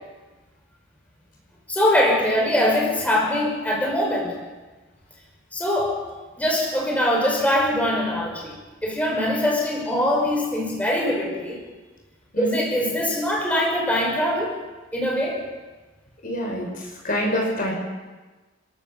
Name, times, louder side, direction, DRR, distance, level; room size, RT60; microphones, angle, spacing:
voice 1, 1.7-4.3 5.5-6.0 6.4-8.6 8.8-11.6 12.4-14.5 14.9-15.4, left 1 dB, 5° left, -2 dB, 6.0 m, -22 dB
voice 2, 16.2-17.7, equal, 40° left, -1 dB, 5.5 m, -26 dB
29.0 x 17.0 x 7.2 m, 1.3 s
head